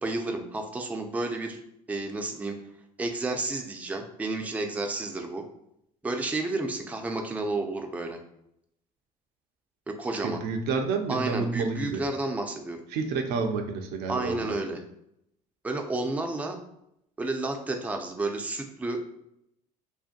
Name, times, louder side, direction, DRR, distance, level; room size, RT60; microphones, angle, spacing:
voice 1, 0.0-1.6 1.9-2.6 3.0-5.5 6.0-8.2 9.9-10.4 11.1-12.8 14.1-14.8 15.6-16.6 17.2-19.2, right 2 dB, 10° right, 3 dB, 0.4 m, -31 dB
voice 2, 10.2-12.0 12.9-14.5, right 4 dB, 65° right, 4 dB, 0.4 m, -29 dB
2.6 x 2.2 x 2.5 m, 0.78 s
hypercardioid pair, 70°, 18 cm